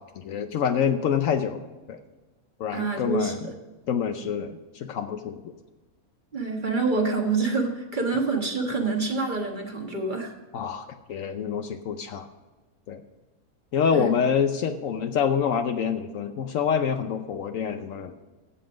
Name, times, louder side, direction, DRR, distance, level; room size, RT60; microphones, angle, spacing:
voice 1, 0.0-1.6 1.9-2.0 2.6-3.4 3.9-5.4 10.5-12.3 12.9-13.0 13.7-18.2, left 7 dB, 70° left, 8 dB, 1.0 m, -26 dB
voice 2, 2.7-3.5 6.3-10.3 13.9-14.1, right 3 dB, 35° right, 2 dB, 1.6 m, -27 dB
15.5 x 5.7 x 5.1 m, 1.2 s
omnidirectional pair, 1.5 m